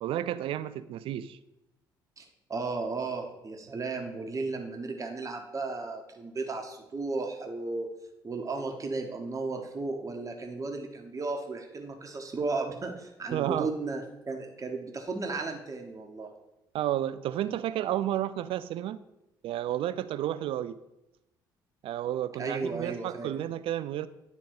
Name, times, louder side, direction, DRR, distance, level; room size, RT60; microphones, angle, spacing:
voice 1, 0.0-1.4 13.3-13.7 16.7-19.0 19.4-20.8 21.8-24.1, right 12 dB, 55° right, 13 dB, 0.4 m, -31 dB
voice 2, 2.2-7.9 8.2-16.3 22.4-23.3, right 3 dB, 30° right, 3 dB, 1.1 m, -34 dB
9.3 x 3.6 x 4.6 m, 0.90 s
figure-of-eight pair, 50°, 11 cm